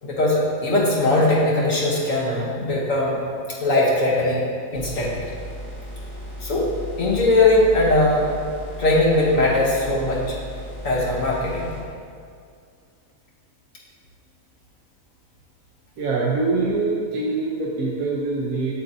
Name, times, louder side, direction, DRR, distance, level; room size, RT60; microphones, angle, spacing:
voice 1, 0.0-3.2 3.6-4.4 4.7-5.3 6.4-6.7 7.0-8.3 8.8-10.3 10.8-11.7, left 2 dB, 70° left, -4 dB, 1.4 m, -20 dB
sound 1, 4.7-11.8, equal, 85° left, 2.1 m, -36 dB
voice 2, 16.0-18.7, right 3 dB, 75° right, -4 dB, 1.3 m, -24 dB
8.2 x 7.4 x 2.7 m, 2.2 s
omnidirectional pair, 1.5 m